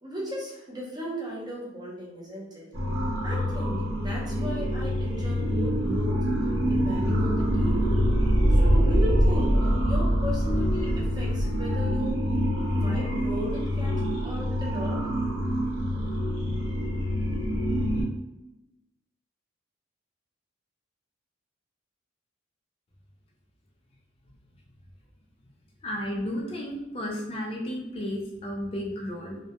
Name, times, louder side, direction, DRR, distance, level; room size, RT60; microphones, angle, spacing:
voice 1, 0.0-2.7 3.2-6.2 6.6-7.8 8.5-12.2 12.7-14.0 14.2-15.0, equal, 20° right, -4 dB, 0.6 m, -36 dB
sound 1, 2.7-18.0, equal, 85° right, 0.7 m, -25 dB
voice 2, 25.8-29.4, equal, 30° left, -2 dB, 0.4 m, -33 dB
2.1 x 2.1 x 2.8 m, 0.96 s
head